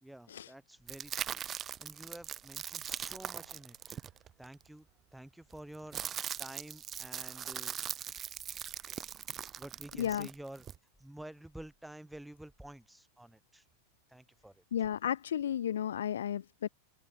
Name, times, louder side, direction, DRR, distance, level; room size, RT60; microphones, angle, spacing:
voice 1, 0.0-4.0 4.4-4.9 5.1-7.8 9.6-10.6 11.0-13.6 14.1-14.6, right 1 dB, 5° right, 1.0 m, -50 dB
sound 1, 0.9-4.6 5.5-10.8, right 9 dB, 25° right, 0.7 m, -41 dB
sound 2, 2.8-6.1, right 3 dB, 80° right, 3.4 m, -71 dB
voice 2, 10.0-10.3 14.7-16.7, left 10 dB, 65° left, 0.4 m, -33 dB
open air
figure-of-eight pair, 90°, 0 cm